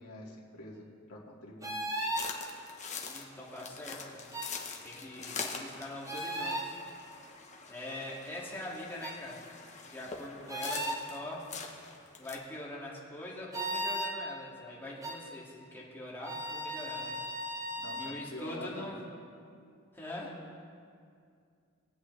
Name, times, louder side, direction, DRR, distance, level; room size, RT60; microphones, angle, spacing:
voice 1, 0.0-1.8 17.5-18.9, left 1 dB, 75° left, -4 dB, 2.3 m, -46 dB
sound 1, 1.6-2.3 4.3-4.5 6.0-6.7 9.0-9.2 10.5-11.0 13.5-14.1 15.0-15.2 16.2-18.2, right 1 dB, 15° right, 1.2 m, -36 dB
sound 2, 2.1-12.3, left 5 dB, 35° left, 1.1 m, -44 dB
voice 2, 3.0-4.3 4.8-6.8 7.7-9.6 9.8-11.5 12.2-17.2 18.0-19.0 19.9-20.4, left 1 dB, 10° left, -6 dB, 2.3 m, -43 dB
21.0 x 8.3 x 3.3 m, 2.3 s
head